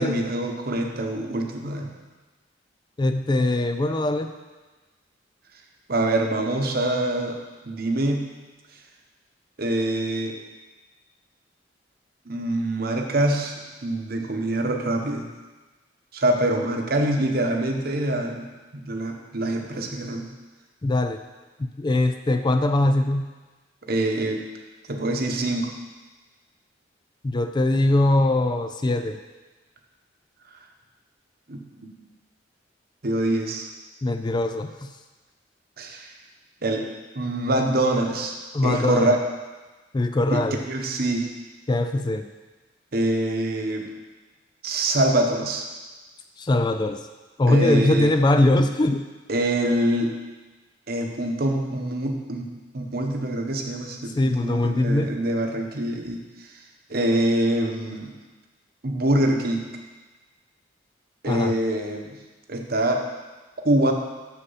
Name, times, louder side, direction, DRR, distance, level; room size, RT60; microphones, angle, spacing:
voice 1, 0.0-1.9 5.9-7.4 7.6-8.3 9.6-10.3 12.3-13.6 13.8-15.3 16.1-18.5 18.7-20.3 23.9-24.4 24.9-25.7 31.5-31.9 33.0-33.7 35.8-36.1 36.6-36.9 37.1-38.4 38.6-39.2 40.3-41.3 42.9-43.9 44.6-45.7 47.5-48.1 49.3-50.1 50.9-56.2 56.9-58.1 58.8-59.7 61.2-62.2 62.5-63.0 63.6-63.9, right 1 dB, 55° right, 3 dB, 1.0 m, -25 dB
voice 2, 3.0-4.3 20.8-21.2 21.8-23.3 27.2-29.2 34.0-34.9 38.5-39.1 39.9-40.6 41.7-42.2 46.4-47.0 47.4-49.0 54.2-55.2 61.2-61.5, left 2 dB, 25° left, 8 dB, 0.4 m, -21 dB
6.9 x 6.8 x 5.5 m, 1.2 s
head